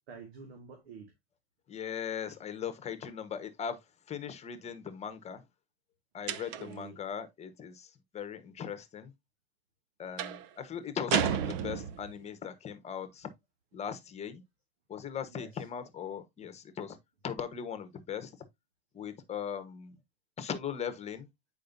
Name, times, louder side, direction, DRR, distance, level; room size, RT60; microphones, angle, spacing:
voice 1, 0.1-1.1 6.3-7.0 15.3-15.7, right 5 dB, 75° right, 1.9 m, -49 dB
voice 2, 1.7-3.8 4.1-5.4 6.1-9.1 10.0-13.3 13.7-14.4 14.9-17.0 17.2-18.3 18.9-20.0 20.4-21.3, left 8 dB, 20° left, 1.1 m, -39 dB
sound 1, 6.3-6.9 10.2-10.5 11.1-12.2, right 9 dB, 55° right, 0.8 m, -32 dB
8.6 x 5.0 x 2.6 m
supercardioid pair, 130°, 32 cm